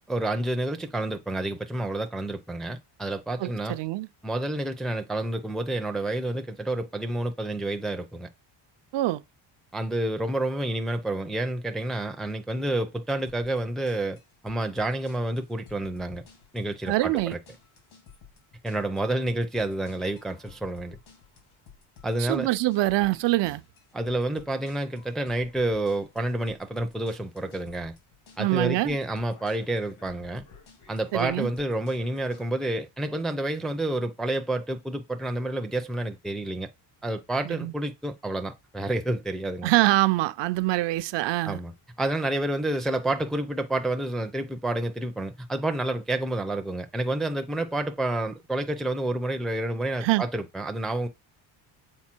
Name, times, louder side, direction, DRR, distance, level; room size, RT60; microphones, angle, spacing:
voice 1, 0.1-3.8 4.2-8.3 9.7-14.2 14.4-16.2 16.5-17.4 18.6-21.0 22.0-22.5 23.9-27.9 28.4-30.4 30.9-36.7 37.0-39.7 41.4-51.1, right 1 dB, ahead, 0.4 m, -29 dB
voice 2, 3.4-4.1 8.9-9.2 16.9-17.3 22.2-23.6 28.4-29.0 31.1-31.5 37.4-37.7 39.6-41.6 50.0-50.2, right 18 dB, 65° right, 0.6 m, -24 dB
sound 1, 13.3-32.5, left 6 dB, 80° left, 2.5 m, -53 dB
7.4 x 4.1 x 4.4 m
cardioid pair, 135°, 47 cm